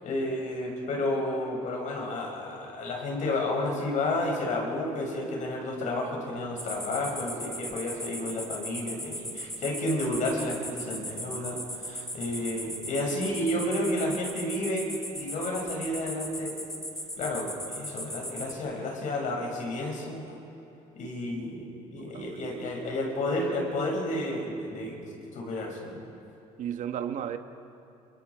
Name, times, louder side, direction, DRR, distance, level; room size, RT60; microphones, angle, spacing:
voice 1, 0.0-16.6 17.2-20.2 20.9-25.0 25.3-26.0, left 1 dB, 60° left, 0 dB, 7.0 m, -31 dB
sound 1, 6.6-18.5, equal, 5° left, 2.8 m, -38 dB
voice 2, 22.0-22.4 26.6-27.4, right 9 dB, 60° right, 7 dB, 1.4 m, -34 dB
30.0 x 23.5 x 5.0 m, 2.9 s
supercardioid pair, 90°, 14 cm